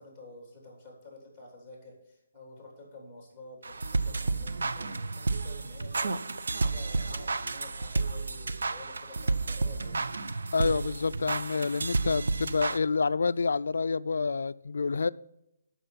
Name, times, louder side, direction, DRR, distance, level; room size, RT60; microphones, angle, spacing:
voice 1, 0.0-6.3 6.6-10.0, left 2 dB, 5° right, 3.1 m, -49 dB
sound 1, 3.6-12.8, right 3 dB, 90° right, 0.6 m, -31 dB
voice 2, 10.5-15.1, left 4 dB, 70° left, 0.3 m, -28 dB
13.5 x 5.9 x 4.0 m
hypercardioid pair, 180°, 0 cm